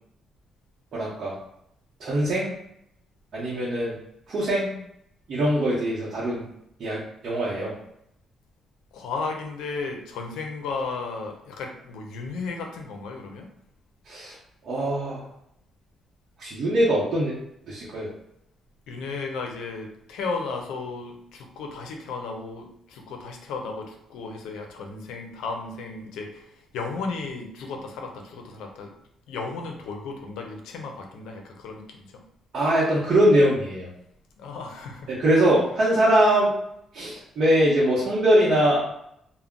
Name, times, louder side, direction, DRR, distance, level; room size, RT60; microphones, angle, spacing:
voice 1, 0.9-1.4 2.0-2.5 3.3-4.0 4.3-4.7 5.3-6.4 6.8-7.7 14.1-14.4 14.6-15.3 16.4-17.3 17.7-18.1 32.5-33.9 35.1-36.5 36.9-38.8, right 1 dB, 60° right, -6 dB, 0.7 m, -22 dB
voice 2, 8.9-13.5 18.9-28.9 29.3-32.2 34.4-35.2, left 4 dB, 90° left, 2 dB, 0.5 m, -34 dB
2.2 x 2.1 x 3.6 m, 0.76 s
cardioid pair, 90°, 0 cm